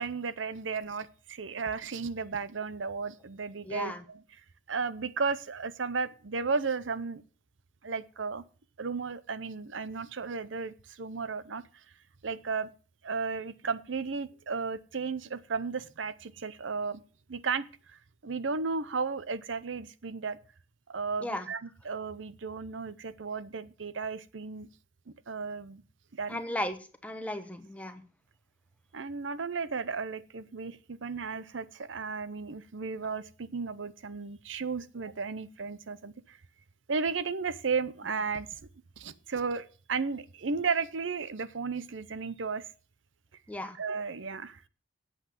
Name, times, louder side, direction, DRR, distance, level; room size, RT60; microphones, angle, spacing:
voice 1, 0.0-4.2 4.7-7.2 7.8-8.4 8.8-11.6 12.2-12.7 13.0-17.0 17.3-20.4 20.9-24.7 25.3-25.8 26.1-26.4 28.9-36.4 36.9-38.5 39.0-42.6 43.8-44.6, right 4 dB, 85° right, 15 dB, 0.7 m, -34 dB
voice 2, 3.6-4.0 21.2-21.5 26.3-26.8 27.0-28.0 43.5-43.8, left 1 dB, 5° left, 8 dB, 1.1 m, -35 dB
8.5 x 8.2 x 6.9 m, 0.37 s
head